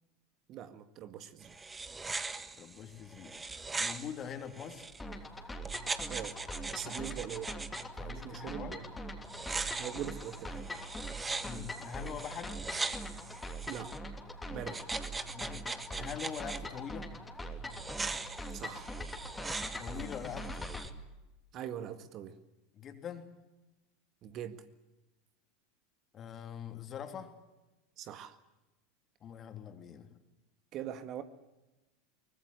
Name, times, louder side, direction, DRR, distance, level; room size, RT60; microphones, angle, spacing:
voice 1, 0.5-1.5 6.1-6.4 6.7-7.5 8.2-8.8 9.8-10.7 13.7-14.0 14.5-14.8 18.5-18.9 21.5-22.4 24.2-24.6 28.0-28.3 30.7-31.2, right 10 dB, 45° right, 1.8 m, -42 dB
sound 1, 1.4-5.0 5.6-7.8 9.2-14.0 14.7-16.6 17.7-20.9, right 3 dB, 15° right, 1.5 m, -40 dB
voice 2, 2.6-4.9 6.8-7.1 7.9-8.8 11.4-12.6 14.5-14.8 15.3-15.7 15.9-17.1 19.8-20.7 22.7-23.3 26.1-27.4 29.2-30.1, left 8 dB, 35° left, 3.5 m, -44 dB
sound 2, 5.0-20.9, equal, 10° left, 3.3 m, -42 dB
24.0 x 20.5 x 8.0 m
figure-of-eight pair, 80°, 0 cm